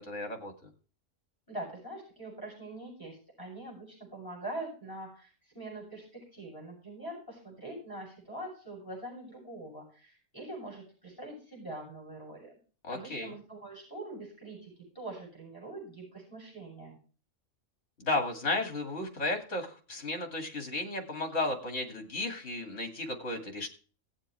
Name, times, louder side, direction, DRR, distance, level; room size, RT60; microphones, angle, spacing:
voice 1, 0.1-0.5 12.8-13.3 18.0-23.7, left 2 dB, 60° left, 4 dB, 3.0 m, -34 dB
voice 2, 1.5-12.6 12.9-17.0, right 1 dB, 15° left, -2 dB, 7.6 m, -43 dB
18.0 x 7.5 x 3.4 m, 0.38 s
omnidirectional pair, 1.5 m